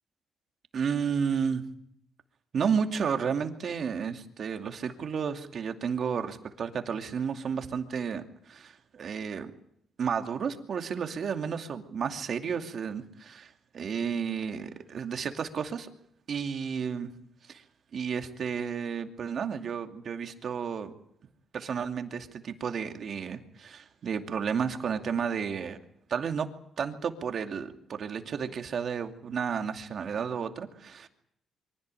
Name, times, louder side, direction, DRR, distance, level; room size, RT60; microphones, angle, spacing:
voice 1, 0.7-1.6 2.5-9.5 10.0-15.9 16.3-17.1 17.5-17.6 17.9-20.9 21.5-25.8 26.1-26.5 26.8-31.1, right 6 dB, 55° right, 5 dB, 2.5 m, -32 dB
24.0 x 17.0 x 9.1 m, 0.71 s
cardioid pair, 90°, 0 cm